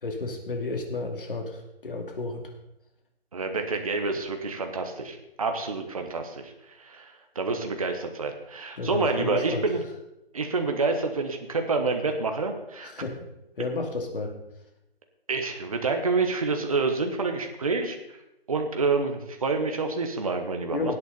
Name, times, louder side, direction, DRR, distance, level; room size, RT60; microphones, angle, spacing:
voice 1, 0.0-2.5 8.8-9.6 12.8-13.2 13.6-14.3 20.7-20.9, left 3 dB, 60° left, 2 dB, 2.7 m, -32 dB
voice 2, 3.3-9.8 10.3-12.9 15.3-18.2 18.5-20.9, right 3 dB, 35° right, 5 dB, 1.2 m, -28 dB
19.0 x 8.2 x 4.1 m, 0.88 s
hypercardioid pair, 170°, 31 cm